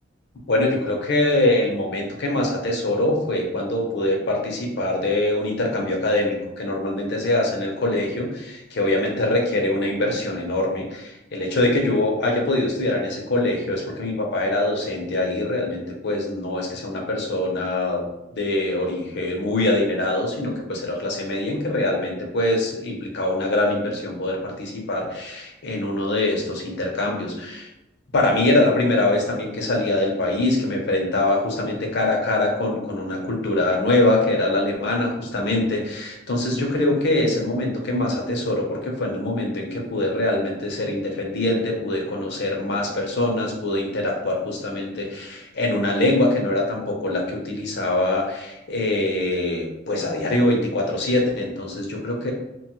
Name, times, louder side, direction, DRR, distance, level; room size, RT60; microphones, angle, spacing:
voice 1, 0.5-18.0 18.3-27.7 28.1-52.3, left 1 dB, 60° left, 0 dB, 0.6 m, -23 dB
2.9 x 2.2 x 3.0 m, 0.91 s
head